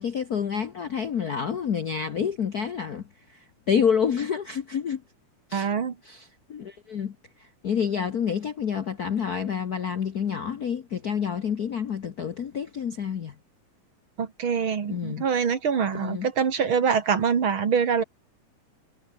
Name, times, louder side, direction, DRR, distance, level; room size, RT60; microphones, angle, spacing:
voice 1, 0.0-3.0 3.3-5.0 5.5-5.7 6.0-13.3 14.9-15.3 15.9-16.3, left 7 dB, 90° left, 0.8 m, -28 dB
voice 2, 5.5-5.9 14.2-18.0, right 6 dB, 45° right, 2.4 m, -24 dB
omnidirectional pair, 3.5 m